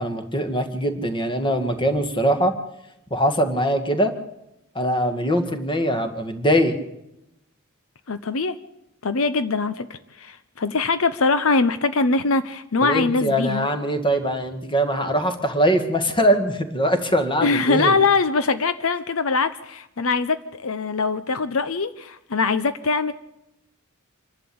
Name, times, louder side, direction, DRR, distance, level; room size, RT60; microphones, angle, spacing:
voice 1, 0.0-2.5 3.1-4.1 4.8-6.7 12.8-18.0, equal, 25° left, 7 dB, 2.0 m, -22 dB
voice 2, 8.1-8.6 9.0-13.7 17.4-23.1, left 4 dB, 70° left, 12 dB, 0.8 m, -22 dB
27.0 x 11.5 x 8.6 m, 0.87 s
head